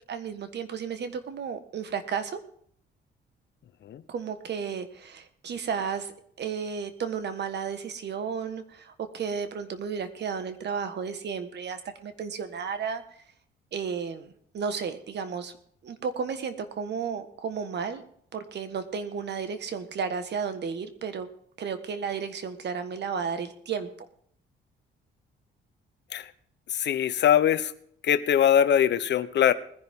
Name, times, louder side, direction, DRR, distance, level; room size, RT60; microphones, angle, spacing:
voice 1, 0.1-2.4 4.1-13.0 13.7-15.5 15.8-18.0 18.3-21.3 21.6-24.1, right 6 dB, 60° right, 10 dB, 1.5 m, -33 dB
voice 2, 26.7-27.7 28.0-29.5, left 9 dB, 60° left, 13 dB, 0.9 m, -22 dB
20.0 x 10.5 x 3.7 m, 0.64 s
cardioid pair, 90°, 20 cm